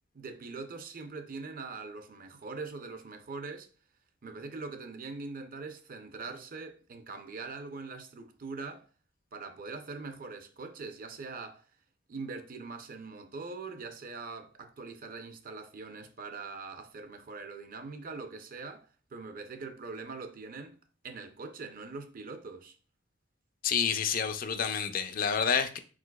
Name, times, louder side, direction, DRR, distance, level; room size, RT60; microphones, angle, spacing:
voice 1, 0.1-3.7 4.2-8.9 9.3-11.7 12.1-20.8 21.0-22.8, right 4 dB, 50° right, 0.5 m, -42 dB
voice 2, 23.6-25.8, left 7 dB, 50° left, 0.4 m, -29 dB
4.8 x 4.0 x 2.2 m
head